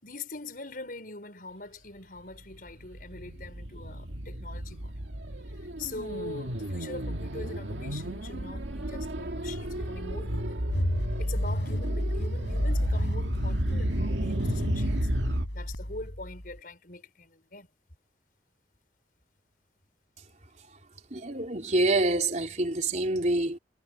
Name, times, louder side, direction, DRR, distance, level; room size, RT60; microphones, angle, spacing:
voice 1, 0.0-4.9 5.8-10.6 11.2-15.1 15.5-17.7, left 2 dB, 50° left, 5.9 m, -43 dB
sound 1, 2.4-15.5, right 1 dB, 90° right, 2.1 m, -33 dB
sound 2, 10.7-16.6, equal, 80° left, 5.5 m, -31 dB
voice 2, 21.1-23.6, right 2 dB, 40° right, 4.2 m, -26 dB
head